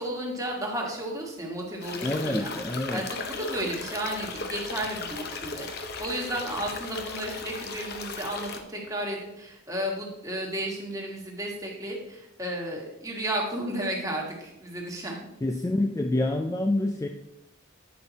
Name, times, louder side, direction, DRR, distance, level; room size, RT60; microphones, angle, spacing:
voice 1, 0.0-2.5 2.9-15.3, right 1 dB, 15° right, -1 dB, 1.5 m, -33 dB
sound 1, 1.8-8.6, left 4 dB, 50° left, 0.8 m, -36 dB
voice 2, 2.0-3.1 15.4-17.1, left 1 dB, 15° left, 4 dB, 0.3 m, -27 dB
8.7 x 5.6 x 4.0 m, 0.87 s
head